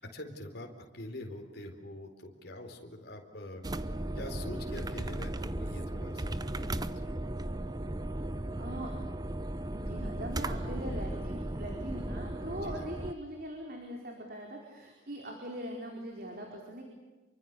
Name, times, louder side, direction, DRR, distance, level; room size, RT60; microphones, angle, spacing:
voice 1, 0.0-7.1 12.5-12.9, left 1 dB, 50° left, 3 dB, 4.3 m, -45 dB
sound 1, 3.6-13.1, right 1 dB, 20° right, 0.8 m, -36 dB
voice 2, 8.6-8.9 9.7-16.8, right 1 dB, 45° right, 1 dB, 4.7 m, -41 dB
29.0 x 24.0 x 6.9 m, 1.2 s
head